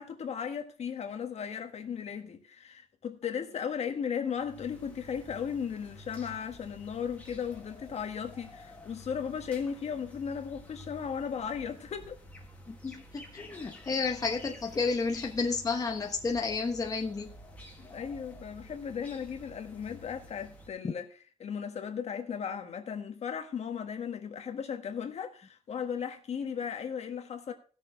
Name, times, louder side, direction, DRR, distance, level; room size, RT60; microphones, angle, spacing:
voice 1, 0.0-12.2 17.8-21.1 21.4-27.5, left 7 dB, 60° left, 1.5 m, -36 dB
sound 1, 4.3-20.7, equal, 10° left, 2.0 m, -51 dB
voice 2, 12.7-17.3 20.8-20.9, left 4 dB, 30° left, 1.1 m, -31 dB
17.0 x 6.7 x 3.8 m
wide cardioid pair, 160°, 13 cm